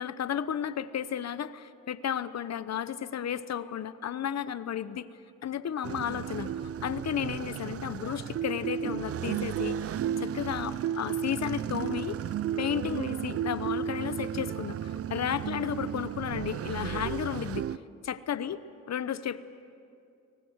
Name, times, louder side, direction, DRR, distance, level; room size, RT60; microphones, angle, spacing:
voice 1, 0.0-5.1 5.4-6.5 6.8-12.2 12.6-17.7 18.0-18.6 18.9-19.4, left 9 dB, 55° left, 14 dB, 1.0 m, -33 dB
sound 1, 5.8-17.8, right 9 dB, 50° right, 0.5 m, -33 dB
23.5 x 19.0 x 8.1 m, 2.5 s
cardioid pair, 85°, 32 cm